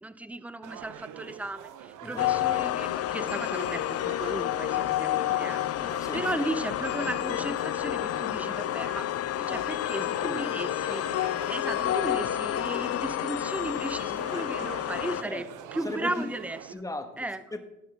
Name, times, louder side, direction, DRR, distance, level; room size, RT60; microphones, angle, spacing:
voice 1, 0.0-5.6 6.1-9.1 9.4-15.4 15.7-16.6 17.2-17.4, right 1 dB, 5° right, 12 dB, 0.6 m, -35 dB
sound 1, 0.6-16.7, right 9 dB, 90° right, 0.7 m, -45 dB
sound 2, 2.2-15.2, left 13 dB, 55° left, 0.4 m, -29 dB
voice 2, 5.8-6.2 10.0-10.4 15.2-15.4 15.8-16.1 16.7-17.1 17.5-17.6, left 2 dB, 10° left, 7 dB, 1.2 m, -37 dB
19.0 x 6.4 x 3.4 m, 0.94 s
cardioid pair, 90°, 30 cm